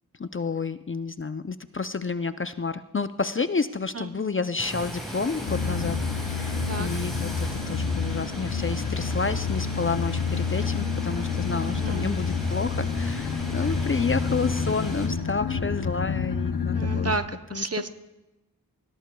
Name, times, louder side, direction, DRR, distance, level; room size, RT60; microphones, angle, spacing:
voice 1, 0.2-17.2 17.5-17.6, left 4 dB, 35° left, 11 dB, 0.5 m, -30 dB
sound 1, 4.6-15.1, equal, ahead, 5.2 m, -37 dB
sound 2, 5.5-17.2, left 5 dB, 80° left, 0.8 m, -28 dB
voice 2, 11.6-12.2 16.7-17.2 17.5-17.9, right 3 dB, 40° right, 10 dB, 0.8 m, -31 dB
20.0 x 16.5 x 2.3 m, 1.0 s
wide cardioid pair, 40°, 37 cm